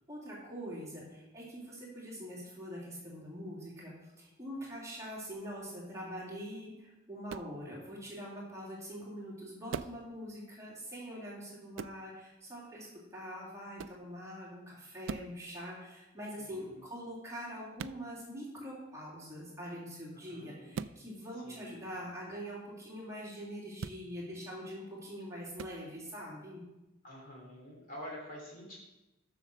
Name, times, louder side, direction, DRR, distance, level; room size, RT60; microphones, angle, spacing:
voice 1, 0.1-26.6, equal, 15° right, -6 dB, 2.5 m, -44 dB
sound 1, 7.3-7.6 9.7-10.0 11.8-12.0 13.8-14.0 15.0-15.4 17.8-18.0 20.7-21.0 23.8-24.0 25.6-25.8, right 6 dB, 70° right, 0.3 m, -40 dB
voice 2, 16.4-16.8 20.3-20.7 21.4-21.8 27.0-28.8, equal, 45° left, -3 dB, 2.9 m, -47 dB
7.4 x 6.2 x 6.6 m, 1.0 s
head